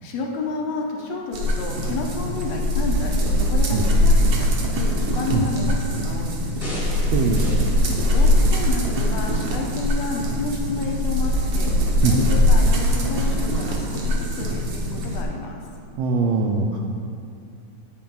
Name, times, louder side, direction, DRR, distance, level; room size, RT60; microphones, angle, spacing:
voice 1, 0.0-4.5 4.7-7.1 7.9-11.7 12.0-15.6, left 3 dB, 75° left, 0 dB, 1.8 m, -31 dB
sound 1, 1.3-15.2, left 1 dB, 70° right, 1.3 m, -21 dB
sound 2, 6.6-9.1 9.6-9.7, left 1 dB, 20° left, 1.1 m, -37 dB
voice 2, 7.1-7.5 12.0-12.3 16.0-16.8, right 4 dB, 85° right, 1 dB, 1.4 m, -21 dB
9.2 x 8.5 x 2.3 m, 2.4 s
omnidirectional pair, 3.3 m